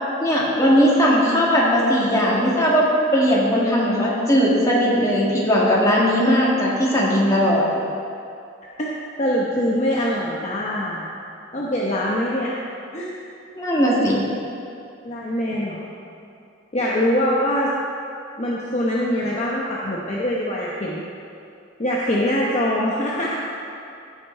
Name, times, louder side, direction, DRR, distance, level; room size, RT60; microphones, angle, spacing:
voice 1, 0.2-2.9 3.1-7.6 13.6-14.2, equal, 15° left, -5 dB, 1.9 m, -18 dB
voice 2, 9.2-11.0 11.5-12.5 12.9-13.1 15.0-15.9 16.7-17.7 18.4-21.0 21.8-23.4, equal, 35° left, -5 dB, 0.9 m, -23 dB
15.5 x 5.5 x 4.4 m, 2.5 s
head